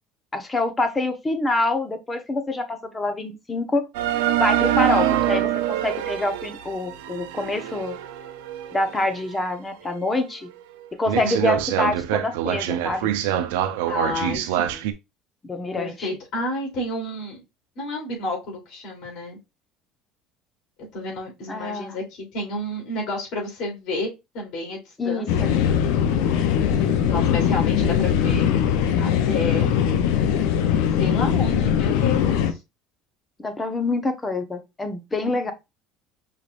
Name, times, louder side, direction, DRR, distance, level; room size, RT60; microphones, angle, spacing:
voice 1, 0.3-3.9 4.4-8.0 8.7-10.5 10.9-13.1 15.4-16.1 21.5-22.0 25.0-25.5 26.8-27.2 33.4-35.5, left 2 dB, 20° left, 1.0 m, -26 dB
sound 1, 3.9-9.3 9.8-9.9 10.5-10.6 11.1-14.9, right 12 dB, 90° right, 0.6 m, -25 dB
voice 2, 11.1-11.5 13.8-14.8 15.8-17.4 17.7-19.4 20.9-25.5 27.1-28.5 29.0-29.8 31.0-32.6 35.2-35.4, left 2 dB, 60° left, 3.1 m, -30 dB
sound 2, 25.3-32.5, left 8 dB, 80° left, 0.6 m, -21 dB
5.6 x 3.2 x 2.5 m
supercardioid pair, 105°, 0 cm